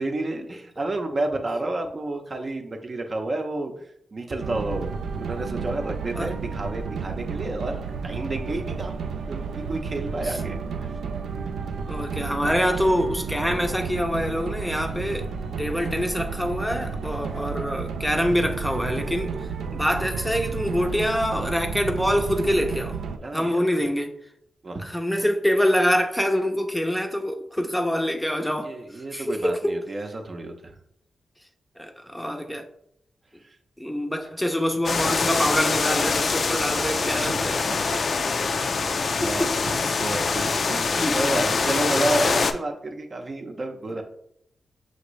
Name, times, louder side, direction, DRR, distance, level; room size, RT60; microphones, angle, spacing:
voice 1, 0.0-3.9 4.1-9.0 9.3-10.9 23.2-23.6 24.6-24.8 28.6-30.8 33.4-33.6 37.0-38.3 38.8-44.0, right 2 dB, 45° right, 0.6 m, -31 dB
sound 1, 4.4-23.2, right 5 dB, 85° right, 0.3 m, -32 dB
voice 2, 11.9-15.3 15.6-19.4 19.7-23.0 23.3-24.2 24.8-29.8 31.8-32.7 33.8-37.6 39.2-39.5 39.8-40.1 41.0-41.2, equal, 5° left, 0.5 m, -25 dB
sound 2, 34.8-42.5, left 4 dB, 60° left, 0.4 m, -24 dB
5.8 x 2.6 x 3.1 m
cardioid pair, 55°, 0 cm